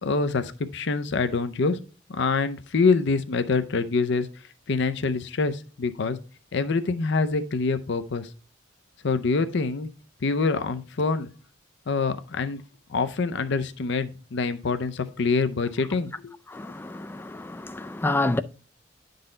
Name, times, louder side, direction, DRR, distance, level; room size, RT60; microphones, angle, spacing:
voice 1, 0.0-1.8 2.1-4.3 4.7-6.2 6.5-8.3 9.0-9.9 10.2-11.3 11.9-12.6 12.9-16.3, left 4 dB, 65° left, 0.6 m, -25 dB
voice 2, 16.5-18.4, left 2 dB, 10° left, 0.3 m, -28 dB
10.5 x 4.0 x 3.8 m
head